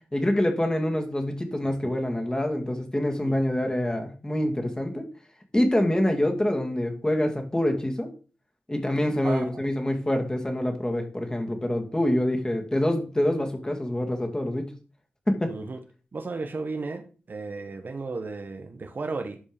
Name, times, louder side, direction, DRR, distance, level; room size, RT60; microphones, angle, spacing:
voice 1, 0.1-5.1 5.5-8.1 8.7-14.7 15.3-15.5, left 1 dB, 20° left, 2.4 m, -26 dB
voice 2, 15.5-15.8 16.1-19.4, right 3 dB, 55° right, 1.2 m, -34 dB
11.5 x 5.3 x 5.1 m
wide cardioid pair, 75°, 4 cm